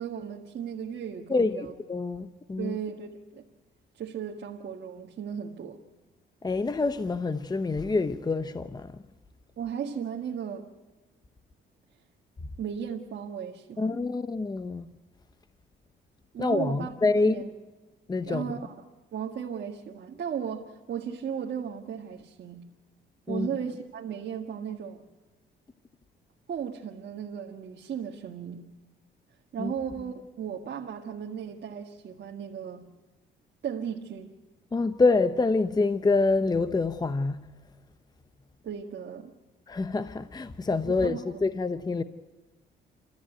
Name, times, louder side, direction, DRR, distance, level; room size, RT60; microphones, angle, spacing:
voice 1, 0.0-1.7 2.6-3.4 3.9-5.8 9.6-10.7 12.6-14.0 16.3-16.9 17.3-17.5 18.3-18.7 19.1-22.6 23.3-25.1 26.5-28.7 29.5-32.9 33.6-34.3 38.6-39.3 40.9-41.4, right 8 dB, 60° right, 1.6 m, -36 dB
voice 2, 1.3-2.8 6.4-9.0 13.8-14.9 16.4-17.4 18.1-18.5 23.3-23.5 29.6-29.7 34.7-37.4 39.7-42.0, left 3 dB, 20° left, 0.7 m, -26 dB
28.5 x 13.5 x 9.1 m
cardioid pair, 90°, 20 cm